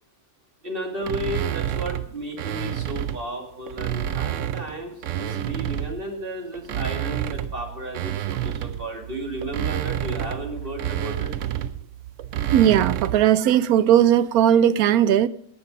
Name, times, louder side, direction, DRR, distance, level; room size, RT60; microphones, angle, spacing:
voice 1, 0.6-11.3, right 1 dB, 40° right, 1 dB, 2.5 m, -33 dB
sound 1, 1.0-3.3 3.7-6.1 6.5-13.3, right 11 dB, 65° right, 0.9 m, -29 dB
voice 2, 12.5-15.3, right 10 dB, 90° right, 15 dB, 1.1 m, -18 dB
18.0 x 6.3 x 5.4 m, 0.72 s
omnidirectional pair, 1.5 m